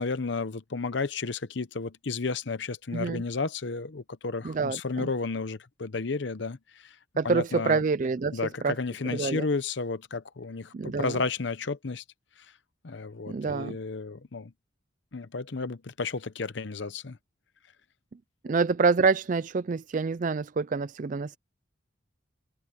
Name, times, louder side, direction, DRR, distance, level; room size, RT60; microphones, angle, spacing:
voice 1, 0.0-6.9 7.2-7.8 8.3-12.0 12.8-14.5 15.1-17.2, left 4 dB, 65° left, 0.8 m, -32 dB
voice 2, 2.9-3.2 4.4-5.1 7.2-8.7 9.1-9.5 10.7-11.2 13.3-13.8 18.4-21.4, right 4 dB, 40° right, 0.4 m, -27 dB
head